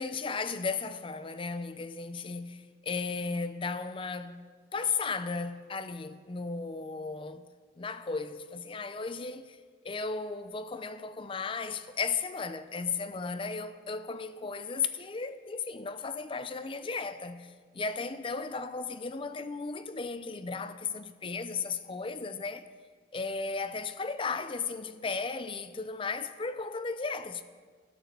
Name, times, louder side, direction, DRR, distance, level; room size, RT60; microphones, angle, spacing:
voice 1, 0.0-4.4 4.7-7.4 7.8-9.6 9.8-17.5 17.7-22.6 23.1-27.4, left 4 dB, 30° left, 0.5 m, -35 dB
12.0 x 6.8 x 6.8 m
head